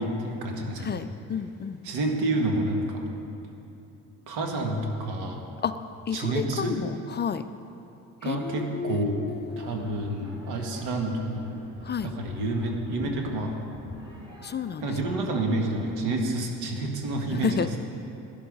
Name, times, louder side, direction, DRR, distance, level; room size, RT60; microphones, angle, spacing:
voice 1, 0.0-1.0 1.8-3.1 4.3-5.4 6.1-6.8 8.2-9.2 9.6-11.6 12.0-13.6 14.8-17.8, right 2 dB, 80° right, 2 dB, 1.7 m, -29 dB
voice 2, 0.8-1.8 5.6-5.8 6.1-7.4 8.2-9.7 11.8-12.1 14.4-14.8 17.4-17.7, left 7 dB, 30° left, 11 dB, 0.4 m, -31 dB
sound 1, 9.5-16.0, left 1 dB, 10° right, 3.3 m, -47 dB
12.0 x 10.0 x 5.3 m, 2.9 s
supercardioid pair, 75°, 37 cm